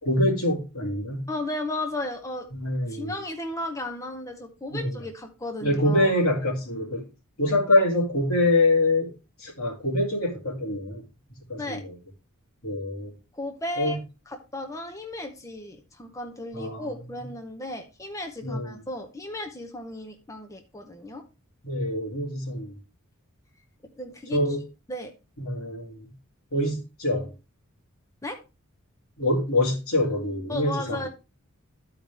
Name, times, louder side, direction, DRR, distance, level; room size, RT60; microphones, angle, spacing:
voice 1, 0.0-1.3 2.5-3.1 4.7-5.0 5.6-7.1 7.4-11.0 11.3-11.9 12.6-13.1 13.8-14.0 16.5-16.9 17.1-17.2 18.4-18.8 21.6-22.8 24.3-24.6 25.4-26.1 26.5-27.3 29.2-31.0, left 1 dB, 75° left, 2.6 m, -25 dB
voice 2, 1.3-2.5 2.9-6.1 11.6-11.8 13.3-14.0 14.3-21.2 24.0-24.4 24.9-25.1 28.2-28.4 30.5-31.1, left 1 dB, 15° left, 0.8 m, -34 dB
12.5 x 4.8 x 3.4 m
head